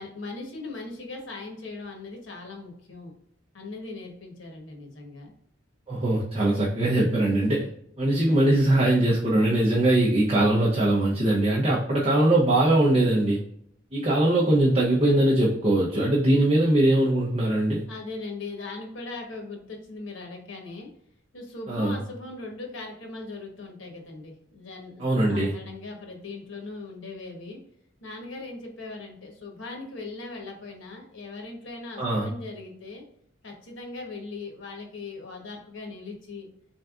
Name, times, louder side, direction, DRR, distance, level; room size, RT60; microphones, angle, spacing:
voice 1, 0.0-3.1 3.5-5.3 16.3-16.7 17.9-20.9 21.3-24.9 25.3-27.6 28.0-33.0 33.4-36.5, left 3 dB, 85° left, 1 dB, 1.1 m, -39 dB
voice 2, 5.9-7.7 8.0-13.4 13.9-17.8 21.7-21.9 25.0-25.5 32.0-32.3, right 1 dB, 30° right, -4 dB, 0.7 m, -21 dB
4.0 x 3.3 x 2.4 m, 0.71 s
head